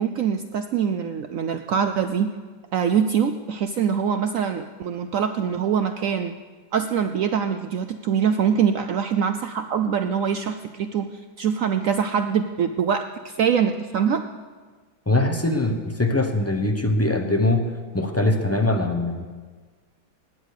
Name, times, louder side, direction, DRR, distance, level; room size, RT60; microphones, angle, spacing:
voice 1, 0.0-2.3 2.7-6.3 6.7-14.2, right 7 dB, 90° right, 9 dB, 0.7 m, -24 dB
voice 2, 15.1-17.7 17.9-19.3, left 2 dB, 15° left, 4 dB, 0.6 m, -22 dB
17.0 x 9.9 x 6.6 m, 1.5 s
omnidirectional pair, 2.1 m